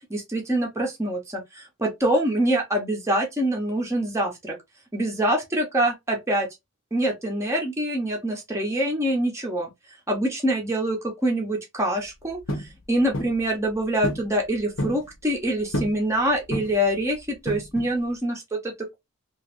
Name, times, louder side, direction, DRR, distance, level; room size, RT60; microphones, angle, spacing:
voice 1, 0.1-4.6 4.9-6.5 6.9-9.7 10.1-19.0, right 1 dB, 15° right, 0.8 m, -25 dB
sound 1, 12.5-12.7 13.1-13.4 14.0-14.3 14.6-15.0 15.7-16.0 16.5-16.9 17.5-17.9, equal, 70° left, 0.9 m, -29 dB
2.9 x 2.5 x 3.0 m
head